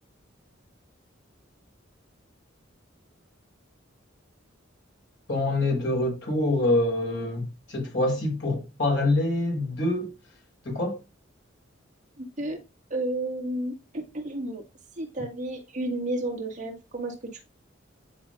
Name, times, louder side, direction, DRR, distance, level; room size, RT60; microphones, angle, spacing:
voice 1, 5.3-10.1 10.6-11.0, left 2 dB, 70° left, 4.7 m, -25 dB
voice 2, 12.2-12.6 12.9-14.6 15.0-17.1, right 1 dB, 40° right, 2.0 m, -32 dB
10.0 x 5.3 x 2.5 m
head